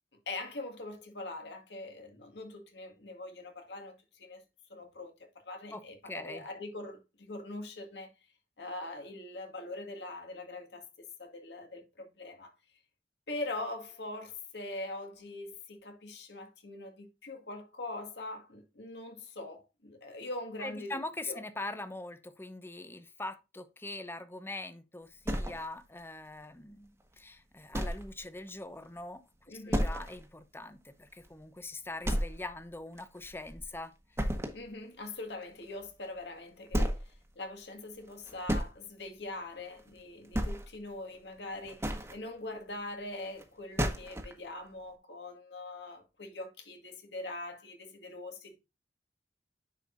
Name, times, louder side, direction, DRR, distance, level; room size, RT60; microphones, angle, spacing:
voice 1, 0.3-4.4 4.7-7.0 7.3-8.1 8.6-12.5 13.3-21.0 21.3-21.4 29.5-29.9 34.5-48.6, left 2 dB, 75° left, 1.9 m, -42 dB
voice 2, 5.7-6.5 20.6-29.5 29.8-33.9 34.2-34.3, left 2 dB, 15° left, 0.7 m, -42 dB
sound 1, 25.2-26.0 26.4-26.5 27.0-27.1 27.7-28.2 28.5-28.6 29.0-29.1 29.7-30.3 30.6-30.7 31.2-31.3 32.0-32.6 33.0-33.7 34.2-34.7 36.0-36.1 36.7-37.1 38.1-38.7 39.7-39.9 40.2-40.9 41.5-42.2 43.4-43.5 43.8-44.3, equal, 15° right, 1.3 m, -32 dB
10.5 x 4.9 x 2.6 m
head